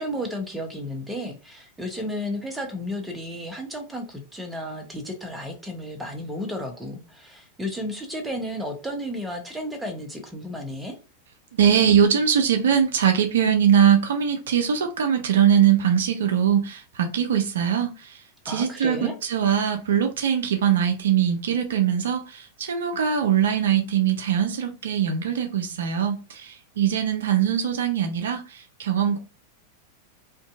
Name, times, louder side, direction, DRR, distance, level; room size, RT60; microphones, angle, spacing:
voice 1, 0.0-11.0 18.5-19.2, equal, 5° right, 0.7 m, -33 dB
voice 2, 11.5-29.2, right 8 dB, 60° right, 0.4 m, -22 dB
2.5 x 2.5 x 2.4 m
figure-of-eight pair, 90°, 0 cm